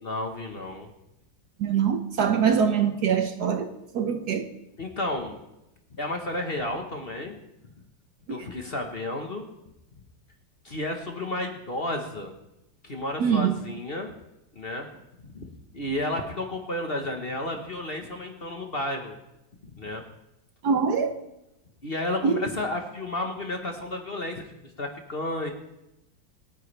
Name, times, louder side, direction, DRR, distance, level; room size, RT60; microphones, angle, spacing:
voice 1, 0.0-0.9 4.8-5.4 5.9-7.4 8.3-9.4 10.6-12.3 12.8-14.1 14.5-14.9 15.3-19.2 19.6-20.0 21.8-24.4 24.8-25.5, left 1 dB, 35° left, 3 dB, 1.3 m, -32 dB
voice 2, 1.6-4.5 13.2-13.6 20.6-21.1 22.2-22.4, right 7 dB, 60° right, 6 dB, 1.3 m, -24 dB
27.0 x 9.3 x 3.4 m, 0.89 s
omnidirectional pair, 2.0 m